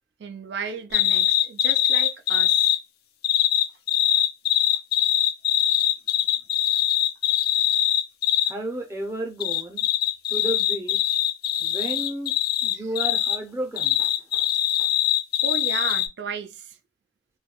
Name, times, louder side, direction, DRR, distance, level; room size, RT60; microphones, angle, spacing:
voice 1, 0.2-2.7 4.1-4.2 12.7-12.9 15.4-16.8, right 5 dB, 70° right, 0.4 m, -34 dB
sound 1, 0.9-2.8 3.2-8.5 9.4-13.4 13.8-16.1, left 11 dB, 55° left, 0.3 m, -22 dB
voice 2, 8.4-9.8 10.3-11.2 11.6-12.3 12.6-14.5 14.8-14.9, right 1 dB, 15° right, 0.5 m, -33 dB
3.1 x 2.1 x 2.2 m
head